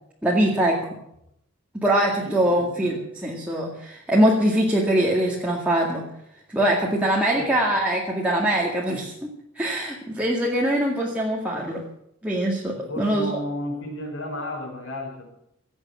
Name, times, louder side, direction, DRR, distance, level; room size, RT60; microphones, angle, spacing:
voice 1, 0.2-0.8 1.7-6.1 6.5-11.8 12.2-13.3, right 1 dB, 5° right, -4 dB, 2.1 m, -23 dB
voice 2, 2.2-3.0 7.3-7.5 12.8-15.2, left 1 dB, 65° left, 0 dB, 6.0 m, -33 dB
17.5 x 8.2 x 8.4 m, 0.76 s
head